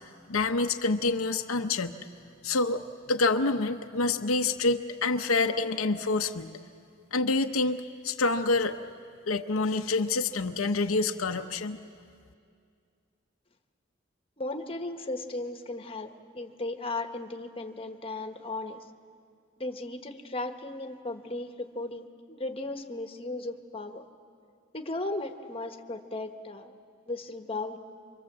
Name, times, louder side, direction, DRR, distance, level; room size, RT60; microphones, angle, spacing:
voice 1, 0.3-2.0 2.4-6.5 7.1-8.8 9.3-11.8, left 3 dB, 80° left, 5 dB, 0.9 m, -27 dB
voice 2, 14.4-18.8 19.6-24.0 24.7-26.7 27.1-27.8, left 2 dB, 25° left, 5 dB, 1.3 m, -36 dB
26.0 x 25.0 x 7.6 m, 2.3 s
head